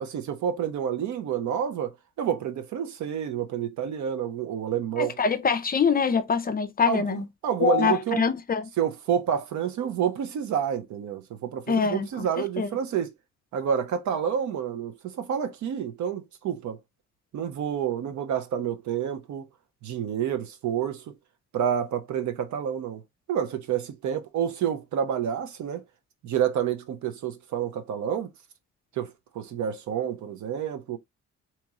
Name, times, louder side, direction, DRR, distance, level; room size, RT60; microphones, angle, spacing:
voice 1, 0.0-5.2 6.9-8.2 8.8-13.1 13.5-16.8 17.3-19.5 19.8-21.1 21.5-23.0 23.3-25.8 26.2-28.3 29.0-31.0, right 8 dB, 70° right, 0.8 m, -29 dB
voice 2, 5.0-7.2 7.6-8.7 11.7-12.3 12.6-12.7, left 6 dB, 30° left, 0.5 m, -24 dB
2.9 x 2.9 x 3.6 m
cardioid pair, 90°, 30 cm